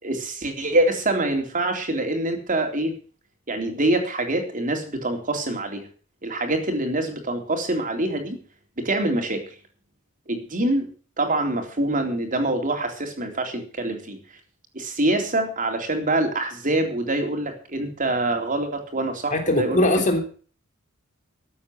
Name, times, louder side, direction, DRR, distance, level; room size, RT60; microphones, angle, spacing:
voice 1, 0.0-2.9 3.5-5.9 6.2-8.4 8.8-9.4 10.3-10.9 11.2-14.2 14.7-19.9, right 2 dB, 40° right, 4 dB, 3.7 m, -25 dB
voice 2, 19.3-20.2, left 1 dB, 40° left, 4 dB, 3.1 m, -20 dB
14.0 x 8.6 x 7.9 m, 0.40 s
head